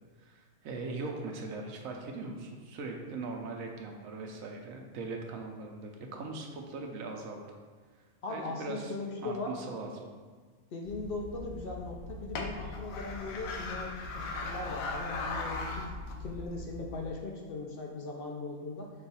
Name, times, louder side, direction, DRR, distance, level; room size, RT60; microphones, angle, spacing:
voice 1, 0.2-7.6 8.3-8.9 9.2-10.1 12.6-12.7, right 3 dB, 80° right, 2 dB, 1.0 m, -40 dB
voice 2, 8.2-9.5 10.7-15.9 16.2-18.9, left 3 dB, 60° left, 0 dB, 0.6 m, -39 dB
sound 1, 10.9-17.1, left 3 dB, 85° left, 1.0 m, -39 dB
5.3 x 2.4 x 4.0 m, 1.5 s
omnidirectional pair, 1.4 m